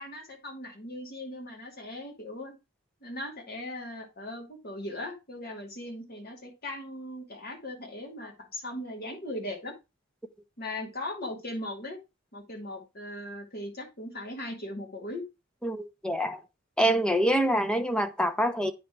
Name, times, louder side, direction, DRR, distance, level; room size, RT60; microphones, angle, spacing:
voice 1, 0.0-2.5 3.0-9.7 10.6-12.0 12.3-15.2, left 1 dB, 50° left, 2.3 m, -38 dB
voice 2, 15.6-16.4 16.8-18.7, equal, 5° left, 0.8 m, -25 dB
9.1 x 3.3 x 6.0 m
head